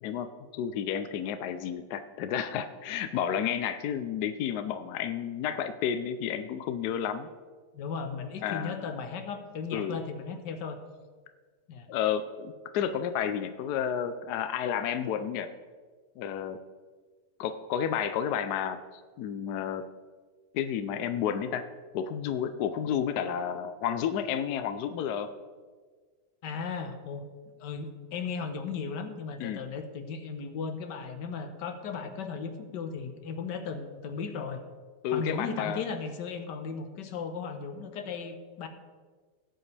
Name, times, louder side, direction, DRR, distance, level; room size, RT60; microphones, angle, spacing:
voice 1, 0.0-7.3 8.4-8.9 9.7-10.0 11.9-15.5 16.2-16.6 17.4-19.8 20.5-21.6 21.9-25.3 29.4-29.6 35.0-35.8, left 8 dB, 75° left, 9 dB, 1.1 m, -31 dB
voice 2, 7.7-10.8 11.7-11.9 26.4-27.3 27.6-34.6 35.1-38.7, left 5 dB, 90° left, 7 dB, 1.6 m, -36 dB
18.0 x 8.0 x 3.3 m, 1.5 s
omnidirectional pair, 1.8 m